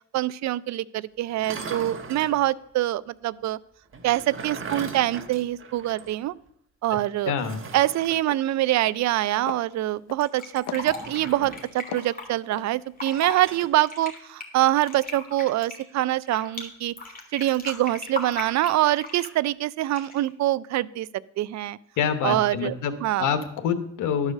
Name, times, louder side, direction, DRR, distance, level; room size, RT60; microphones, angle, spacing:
voice 1, 0.1-3.6 4.0-6.3 6.8-7.3 7.7-16.9 17.3-21.1 21.4-21.8 22.2-22.7 23.0-23.3, right 14 dB, 65° right, 19 dB, 0.4 m, -25 dB
sound 1, 1.3-2.4 3.9-6.2 6.5-6.6 7.4-8.3 10.8-11.7 13.1-13.7, right 4 dB, 40° right, 1.3 m, -39 dB
sound 2, 7.2-7.3 7.6-7.9 8.2-8.4 8.8-9.2 9.5-10.3 10.7-11.4 11.9-13.2 13.5-13.7, left 10 dB, 60° left, 0.6 m, -39 dB
voice 2, 7.3-7.6 22.0-22.9 23.2-24.3, left 7 dB, 85° left, 9 dB, 1.1 m, -26 dB
Fill (with liquid), 10.2-12.2 12.8-13.4 13.8-16.6 17.0-19.4 19.9-20.3, left 3 dB, 30° left, 2.3 m, -37 dB
12.0 x 4.9 x 6.5 m, 0.72 s
cardioid pair, 90°, 30 cm